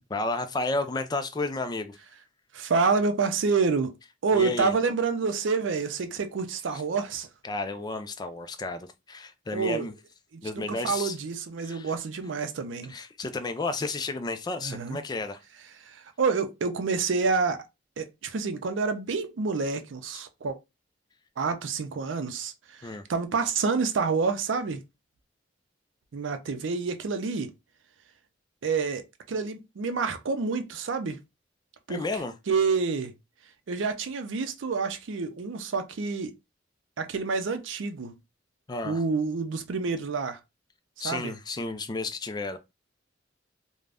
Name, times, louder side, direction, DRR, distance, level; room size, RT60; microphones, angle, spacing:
voice 1, 0.1-2.0 4.3-4.7 6.7-6.8 7.4-9.9 10.4-11.2 11.6-11.9 12.9-15.4 22.8-23.0 31.9-32.3 38.7-39.0 41.0-42.6, left 3 dB, 20° left, 0.3 m, -32 dB
voice 2, 2.5-3.9 4.2-7.3 9.5-9.9 10.3-12.9 14.6-15.0 15.9-17.6 18.0-20.6 21.4-22.5 22.8-24.8 26.1-27.5 28.6-31.2 31.9-32.0 32.5-33.1 33.7-36.3 37.0-38.1 38.8-40.4 41.0-41.3, right 4 dB, 80° right, 0.5 m, -28 dB
2.4 x 2.1 x 3.3 m
head